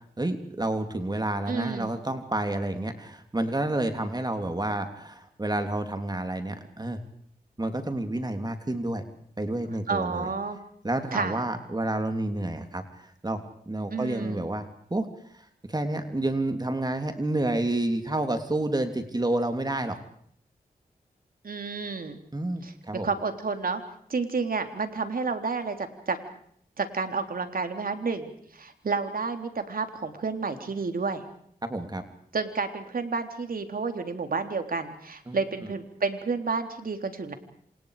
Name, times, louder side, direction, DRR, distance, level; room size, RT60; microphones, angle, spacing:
voice 1, 0.2-7.0 7.6-9.0 9.4-10.3 10.8-12.8 13.2-15.1 15.7-20.0 22.3-23.1 31.7-32.0 35.3-35.4, right 1 dB, 25° right, 7 dB, 3.3 m, -29 dB
voice 2, 1.5-1.9 9.9-10.6 11.1-11.4 13.9-14.4 21.4-22.2 22.6-22.7 23.0-23.8 24.1-26.2 26.8-31.2 32.3-37.3, right 4 dB, 65° right, 7 dB, 3.7 m, -30 dB
28.0 x 27.5 x 5.1 m, 0.64 s
cardioid pair, 55°, 16 cm